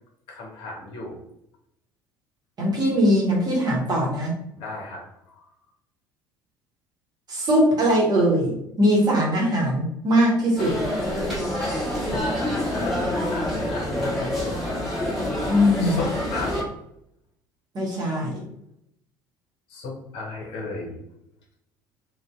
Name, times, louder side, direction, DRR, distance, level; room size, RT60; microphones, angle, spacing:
voice 1, 0.3-1.2 4.6-5.1 5.4-5.5 12.0-14.6 15.8-16.6 19.7-21.0, left 3 dB, 55° left, -1 dB, 0.8 m, -35 dB
voice 2, 2.6-4.3 7.3-10.7 15.5-16.0 17.7-18.4, equal, 40° right, -2 dB, 1.0 m, -21 dB
sound 1, 10.6-16.6, left 1 dB, ahead, 1.2 m, -27 dB
2.6 x 2.2 x 2.3 m, 0.77 s
figure-of-eight pair, 60°, 11 cm